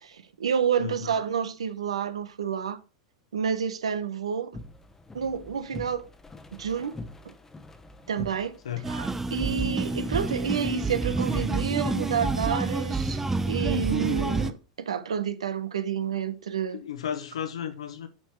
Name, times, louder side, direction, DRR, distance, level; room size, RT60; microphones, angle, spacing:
voice 1, 0.0-2.8 3.3-4.5 5.1-6.0 6.6-6.9 8.1-8.5 8.9-13.2 13.5-16.8, right 7 dB, 80° right, 0.8 m, -29 dB
voice 2, 0.8-1.1 8.6-8.9 16.7-18.1, left 9 dB, 75° left, 1.2 m, -34 dB
sound 1, 4.5-14.4, left 2 dB, 15° left, 1.0 m, -44 dB
sound 2, 8.8-14.5, right 3 dB, 10° right, 0.7 m, -28 dB
8.8 x 4.6 x 4.4 m
hypercardioid pair, 90°, 3 cm